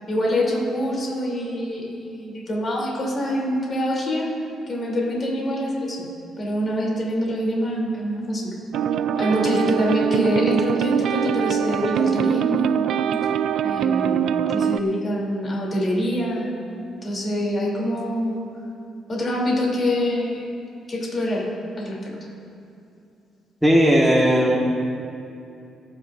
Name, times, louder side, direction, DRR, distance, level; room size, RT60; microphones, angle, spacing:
voice 1, 0.1-4.3 4.7-6.1 6.4-8.4 9.2-12.9 13.6-16.5 17.0-18.5 19.1-20.5 20.9-21.4 21.8-22.1, equal, 40° left, -3 dB, 3.2 m, -25 dB
sound 1, 8.7-14.8, right 8 dB, 75° right, 0.4 m, -23 dB
voice 2, 23.6-24.6, equal, 5° right, -4 dB, 1.6 m, -16 dB
28.0 x 10.0 x 2.6 m, 2.6 s
cardioid pair, 90°, 0 cm